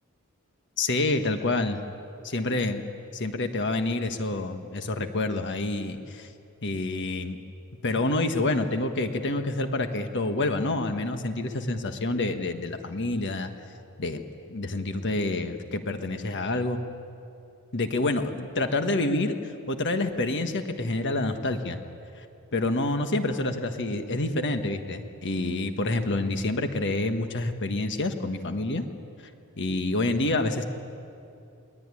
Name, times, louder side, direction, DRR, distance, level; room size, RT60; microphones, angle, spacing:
voice 1, 0.8-1.8 2.2-2.9 3.1-6.3 6.6-7.4 7.8-13.5 14.0-14.2 14.5-16.8 17.7-18.3 18.6-21.8 22.2-22.3 22.5-28.8 29.6-30.6, left 2 dB, 55° left, 7 dB, 1.4 m, -27 dB
23.5 x 19.0 x 9.8 m, 2.6 s
head